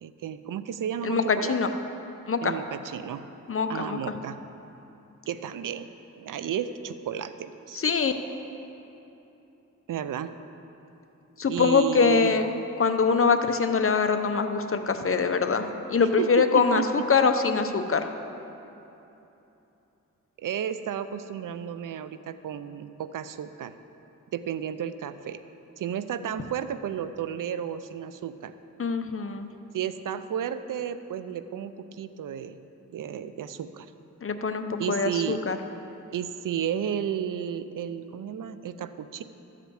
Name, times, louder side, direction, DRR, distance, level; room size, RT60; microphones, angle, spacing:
voice 1, 0.0-1.7 2.4-3.2 3.7-4.4 5.3-5.9 6.2-7.8 9.9-10.3 11.5-12.4 16.0-16.9 20.4-23.7 24.3-25.4 25.8-28.5 29.7-32.6 32.9-33.9 34.8-35.4 36.1-39.2, right 9 dB, 90° right, 12 dB, 0.5 m, -32 dB
voice 2, 1.0-1.7 2.3-2.5 3.5-4.0 7.7-8.1 11.4-12.5 12.8-18.1 28.8-29.5 34.2-35.6, left 5 dB, 45° left, 8 dB, 0.7 m, -24 dB
13.0 x 5.0 x 7.9 m, 3.0 s
cardioid pair, 65°, 31 cm